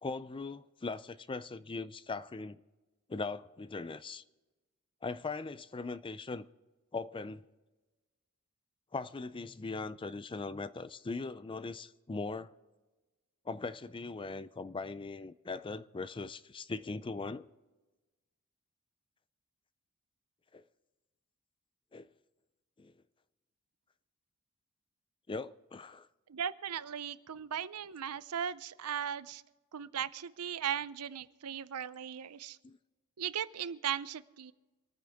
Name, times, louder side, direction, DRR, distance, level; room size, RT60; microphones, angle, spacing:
voice 1, 0.0-2.6 3.1-4.2 5.0-6.5 6.9-7.4 8.9-12.5 13.5-17.5 20.5-20.6 21.9-22.1 22.8-22.9 25.3-26.1 32.6-32.8, left 3 dB, 25° left, 0.4 m, -40 dB
voice 2, 26.3-29.4 29.7-32.6 33.2-34.5, right 8 dB, 85° right, 0.6 m, -37 dB
27.0 x 9.6 x 3.5 m
head